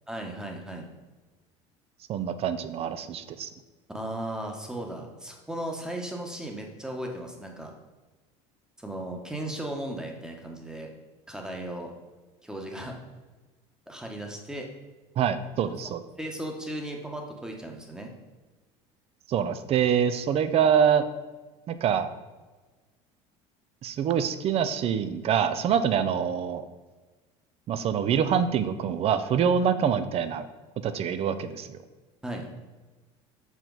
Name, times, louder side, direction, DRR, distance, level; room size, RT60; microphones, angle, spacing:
voice 1, 0.1-0.9 3.9-7.7 8.8-10.9 11.3-11.9 12.4-12.9 13.9-14.7 15.6-18.1 32.2-32.5, right 1 dB, 5° right, 2 dB, 1.1 m, -36 dB
voice 2, 2.1-3.5 15.2-16.0 19.3-21.0 21.7-22.1 23.8-26.6 27.7-30.5 30.8-31.8, right 8 dB, 45° right, 12 dB, 0.5 m, -25 dB
7.0 x 4.4 x 3.9 m, 1.3 s
supercardioid pair, 110°, 14 cm